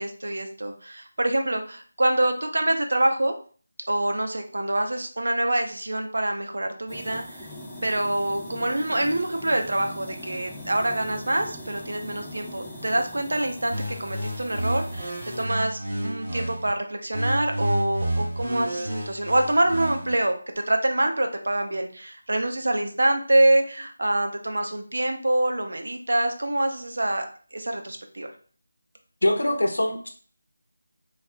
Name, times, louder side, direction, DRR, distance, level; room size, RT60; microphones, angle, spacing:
voice 1, 0.0-3.3 3.9-7.5 7.8-13.7 14.0-20.4 20.7-27.3 27.5-28.3, right 1 dB, 75° right, 4 dB, 0.6 m, -25 dB
sound 1, 6.9-15.5, left 1 dB, ahead, 0.5 m, -41 dB
sound 2, 13.7-16.7 17.1-20.1, right 1 dB, 25° right, 1.5 m, -30 dB
voice 2, 29.2-30.1, left 1 dB, 85° left, 4 dB, 0.7 m, -23 dB
4.3 x 2.3 x 2.2 m, 0.41 s
figure-of-eight pair, 170°, 0 cm